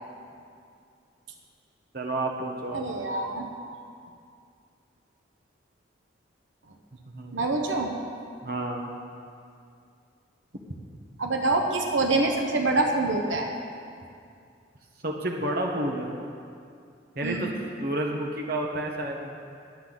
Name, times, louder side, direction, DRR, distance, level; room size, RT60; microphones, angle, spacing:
voice 1, 1.9-3.0 7.1-7.4 8.4-8.9 15.0-16.1 17.1-17.5 17.8-19.3, right 1 dB, 50° right, 0 dB, 1.2 m, -30 dB
voice 2, 2.7-3.5 7.3-8.0 11.2-13.5 17.2-17.5, right 2 dB, 85° right, 2 dB, 1.1 m, -25 dB
21.0 x 8.0 x 4.0 m, 2.4 s
head